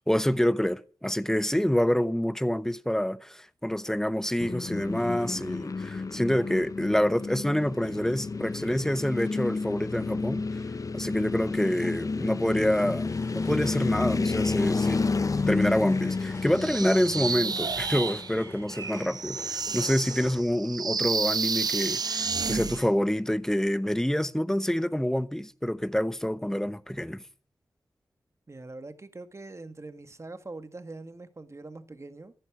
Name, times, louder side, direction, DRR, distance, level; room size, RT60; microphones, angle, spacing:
voice 1, 0.1-10.4 10.9-15.0 15.5-27.2, equal, 5° left, 1.0 m, -27 dB
sound 1, 4.4-18.6, left 4 dB, 50° left, 0.8 m, -30 dB
sound 2, 13.0-20.4, left 2 dB, 30° left, 4.1 m, -46 dB
sound 3, 16.5-22.9, right 5 dB, 60° right, 0.7 m, -31 dB
voice 2, 28.5-32.3, right 2 dB, 40° right, 1.7 m, -43 dB
14.5 x 11.0 x 6.1 m
cardioid pair, 50°, 8 cm